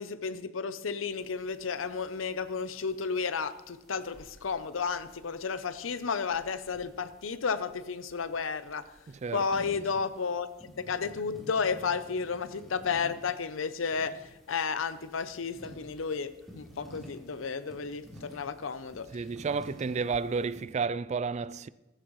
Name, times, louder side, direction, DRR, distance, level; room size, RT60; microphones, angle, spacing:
voice 1, 0.0-8.9 9.3-10.5 10.8-19.1, left 5 dB, 85° left, 0.7 m, -32 dB
sound 1, 1.1-20.7, equal, ahead, 3.5 m, -53 dB
voice 2, 9.1-9.5 19.1-21.7, right 5 dB, 35° right, 0.3 m, -31 dB
15.0 x 15.0 x 3.2 m
head